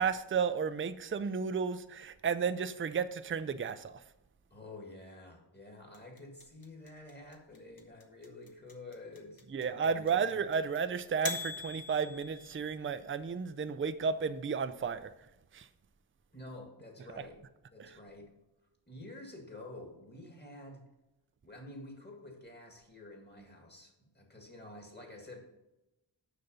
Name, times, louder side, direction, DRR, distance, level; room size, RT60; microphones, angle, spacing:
voice 1, 0.0-4.0 9.5-15.1 15.5-15.7 17.8-18.0, right 6 dB, 30° right, 0.4 m, -33 dB
voice 2, 4.5-10.4 16.3-17.4 17.7-18.3 18.9-20.8 21.4-25.4, left 2 dB, 20° left, 1.9 m, -49 dB
sound 1, 5.9-12.9, left 4 dB, 50° left, 1.1 m, -43 dB
6.6 x 5.8 x 5.3 m
wide cardioid pair, 60°, 45 cm